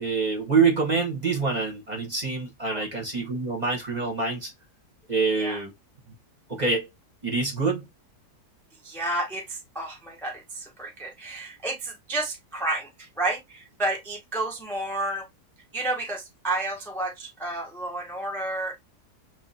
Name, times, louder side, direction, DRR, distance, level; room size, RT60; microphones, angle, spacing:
voice 1, 0.0-4.5 5.1-5.7 6.5-6.9 7.2-7.8, right 4 dB, 35° right, 0.9 m, -25 dB
voice 2, 8.8-15.3 15.7-18.8, right 2 dB, 5° left, 0.4 m, -31 dB
2.8 x 2.5 x 3.8 m
omnidirectional pair, 1.7 m